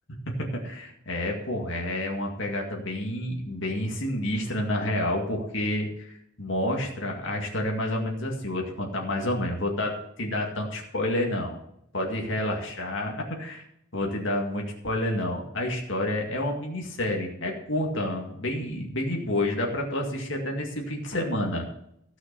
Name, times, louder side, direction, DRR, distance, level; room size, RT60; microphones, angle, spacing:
voice 1, 0.3-11.6 11.9-13.6 13.9-21.6, left 1 dB, 70° left, 0 dB, 2.1 m, -29 dB
14.5 x 6.1 x 6.8 m, 0.77 s
head